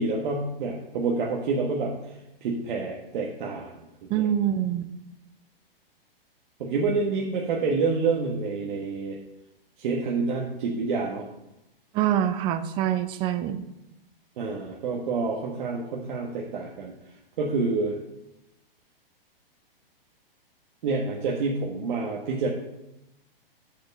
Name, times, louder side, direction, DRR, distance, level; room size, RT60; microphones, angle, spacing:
voice 1, 0.0-1.9 2.4-3.8 4.1-4.3 6.6-9.2 9.8-11.3 14.4-16.9 17.4-18.0 20.8-22.5, right 4 dB, 55° right, -1 dB, 1.3 m, -28 dB
voice 2, 4.1-4.9 11.9-13.6, right 10 dB, 15° right, 11 dB, 0.4 m, -25 dB
6.6 x 5.0 x 7.0 m, 0.90 s
hypercardioid pair, 125°, 29 cm